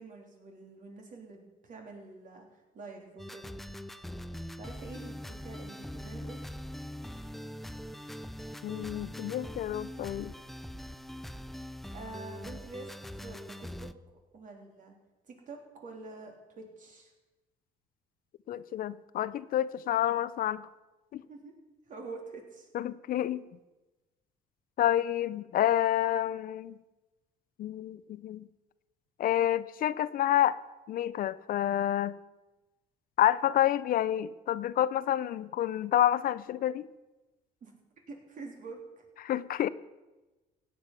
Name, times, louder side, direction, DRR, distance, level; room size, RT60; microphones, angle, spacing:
voice 1, 0.0-3.5 4.6-6.4 11.9-12.9 13.1-13.9 14.3-14.9 15.3-17.1 21.1-21.5 21.8-22.7 37.6-37.8 38.1-39.1, right 3 dB, 50° right, 2 dB, 3.3 m, -46 dB
sound 1, 3.2-13.9, equal, ahead, 0.5 m, -42 dB
voice 2, 8.6-10.3 18.5-20.7 21.1-21.2 22.7-23.4 24.8-26.8 27.6-28.5 29.2-30.6 30.9-32.1 33.2-36.9 39.2-39.7, left 12 dB, 55° left, 16 dB, 0.5 m, -29 dB
16.5 x 8.6 x 6.0 m, 1.1 s
cardioid pair, 110°, 17 cm